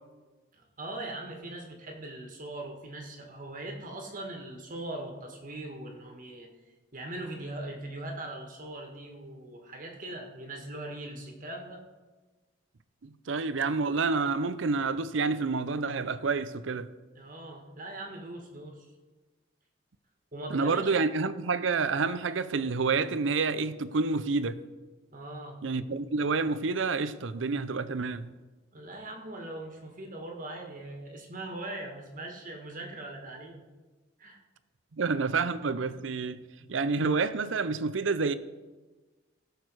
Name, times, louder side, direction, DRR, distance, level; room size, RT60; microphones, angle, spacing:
voice 1, 0.5-6.5 6.9-11.8 17.2-18.9 20.3-20.9 25.1-25.6 28.7-33.6 34.2-34.4, right 1 dB, 45° right, 1.8 m, -40 dB
voice 2, 13.0-16.9 20.5-24.6 25.6-28.3 34.9-36.4 36.7-38.3, right 4 dB, 75° right, 0.6 m, -28 dB
17.0 x 6.8 x 4.7 m
head